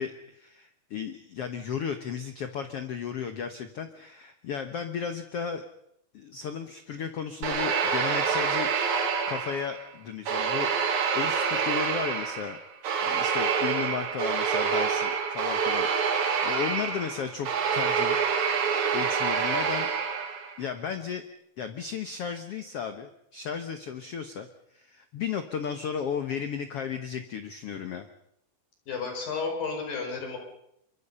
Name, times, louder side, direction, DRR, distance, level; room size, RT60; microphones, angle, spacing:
voice 1, 0.0-5.6 6.1-8.7 9.3-12.6 13.0-18.2 18.9-19.9 20.6-21.2 21.6-24.5 24.7-28.1, left 7 dB, 85° left, 8 dB, 1.3 m, -34 dB
sound 1, 7.4-9.8 10.3-20.6, right 6 dB, 55° right, 3.0 m, -27 dB
voice 2, 28.9-30.4, left 4 dB, 65° left, 3 dB, 6.5 m, -32 dB
25.0 x 23.5 x 5.6 m, 0.76 s
omnidirectional pair, 4.4 m